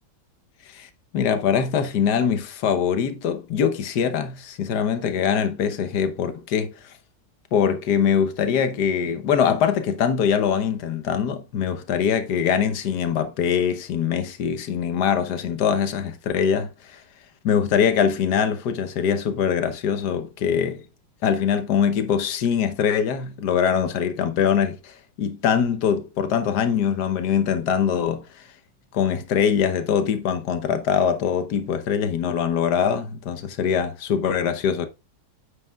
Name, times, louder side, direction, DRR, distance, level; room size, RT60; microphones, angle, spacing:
voice 1, 0.7-6.7 7.5-17.0 17.4-20.8 21.2-28.2 28.9-34.9, left 7 dB, 80° left, 1.5 m, -23 dB
9.2 x 7.7 x 2.3 m
omnidirectional pair, 1.7 m